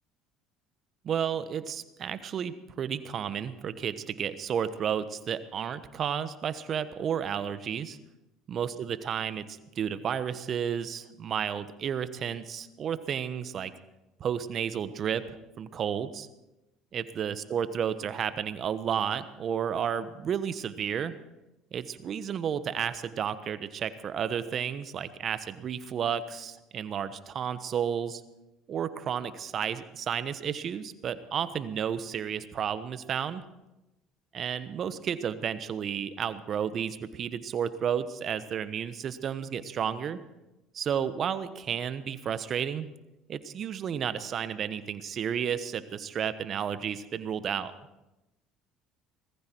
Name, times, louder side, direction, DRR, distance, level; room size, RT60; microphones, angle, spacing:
voice 1, 1.0-8.0 8.5-13.7 14.2-16.3 16.9-21.1 21.7-28.2 28.7-33.4 34.3-40.2 40.7-42.9 43.3-47.7, right 8 dB, 50° right, 13 dB, 1.2 m, -32 dB
19.5 x 14.5 x 4.6 m, 0.98 s
supercardioid pair, 80°, 0 cm